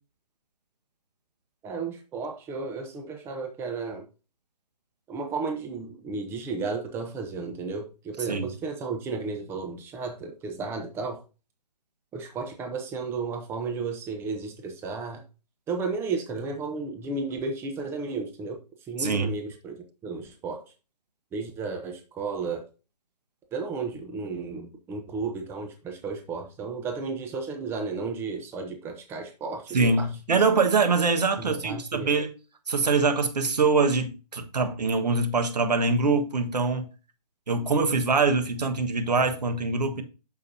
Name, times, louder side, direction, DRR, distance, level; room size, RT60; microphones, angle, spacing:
voice 1, 1.6-4.0 5.1-11.2 12.1-15.2 15.7-18.6 18.9-20.6 21.3-22.6 23.5-30.4 31.4-32.1, right 4 dB, 10° right, 0.9 m, -33 dB
voice 2, 19.0-19.3 29.7-32.3 32.7-36.9 37.5-40.0, right 4 dB, 75° right, 1.5 m, -24 dB
8.5 x 6.6 x 2.7 m
figure-of-eight pair, 145°, 21 cm